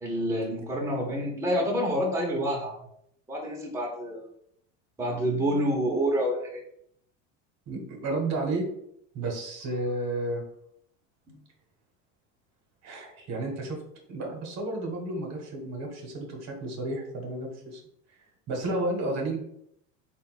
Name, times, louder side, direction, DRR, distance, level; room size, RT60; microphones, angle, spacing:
voice 1, 0.0-2.7 3.3-4.3 5.0-6.6 11.3-11.4, equal, 10° right, -3 dB, 0.8 m, -28 dB
voice 2, 7.7-8.6 9.1-10.4 12.8-13.8 14.1-17.8 18.5-19.4, right 2 dB, 45° right, 2 dB, 1.1 m, -32 dB
3.7 x 2.3 x 4.0 m, 0.72 s
supercardioid pair, 115°, 36 cm